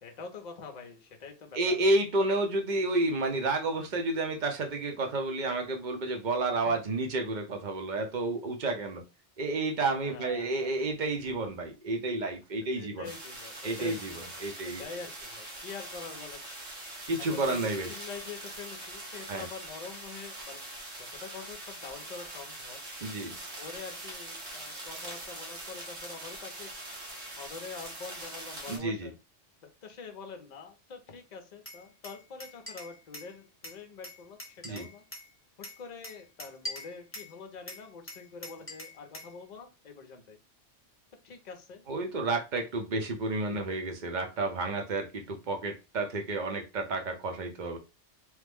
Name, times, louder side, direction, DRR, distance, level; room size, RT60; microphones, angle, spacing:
voice 1, 0.0-1.9 6.6-6.8 10.0-10.8 12.6-14.3 14.6-16.4 17.2-22.8 23.6-26.7 27.2-29.1 29.6-35.0 35.6-40.4 41.2-41.8, left 5 dB, 45° left, 5 dB, 0.6 m, -45 dB
voice 2, 1.5-9.0 9.4-13.1 13.6-14.1 14.4-14.8 17.1-17.9 19.3-19.5 23.0-23.4 28.7-29.1 34.6-34.9 41.9-47.8, right 2 dB, 50° right, 4 dB, 0.7 m, -30 dB
sound 1, 13.0-28.8, right 1 dB, 85° right, 1.5 m, -43 dB
Glass, 31.7-33.3 33.6-35.3 35.6-37.3 37.7-39.3, left 1 dB, 10° left, 0.8 m, -43 dB
3.1 x 2.1 x 3.4 m, 0.28 s
omnidirectional pair, 1.2 m